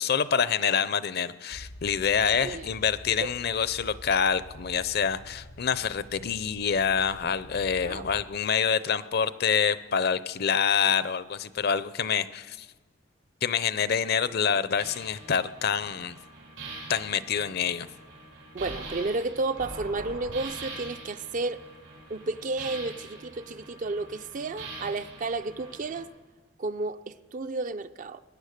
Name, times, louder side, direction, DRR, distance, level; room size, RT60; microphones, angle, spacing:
voice 1, 0.0-12.7 13.4-16.2 16.9-17.9, left 7 dB, 55° left, 0.6 m, -26 dB
sound 1, 1.5-8.2, left 1 dB, 85° left, 1.3 m, -47 dB
sound 2, 14.8-26.0, right 2 dB, 90° right, 6.0 m, -43 dB
voice 2, 18.5-21.6 22.1-26.1 26.6-28.2, right 3 dB, 45° right, 0.5 m, -32 dB
22.0 x 9.6 x 6.6 m
head